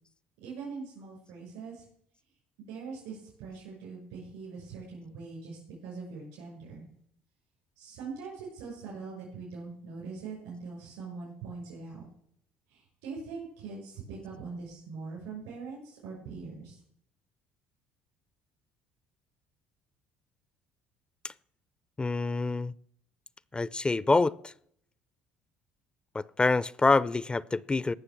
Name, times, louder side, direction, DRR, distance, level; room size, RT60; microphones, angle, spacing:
voice 1, 0.4-1.8 2.6-6.9 7.8-12.0 12.7-16.8, right 4 dB, 80° right, 5.9 m, -42 dB
voice 2, 22.0-22.7 23.5-24.5 26.1-27.9, left 3 dB, 20° left, 0.4 m, -26 dB
17.5 x 6.3 x 7.2 m
hypercardioid pair, 65°, 5 cm